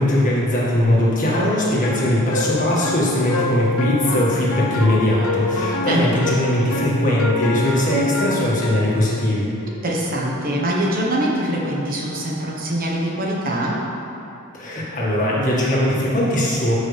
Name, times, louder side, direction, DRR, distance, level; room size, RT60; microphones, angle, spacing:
voice 1, 0.0-9.5 14.5-16.8, left 1 dB, 40° left, -6 dB, 1.8 m, -20 dB
sound 1, 1.3-9.0, left 3 dB, 75° left, 0.7 m, -26 dB
voice 2, 9.8-13.8, right 1 dB, 40° right, -3 dB, 1.2 m, -23 dB
13.5 x 5.5 x 3.4 m, 2.9 s
head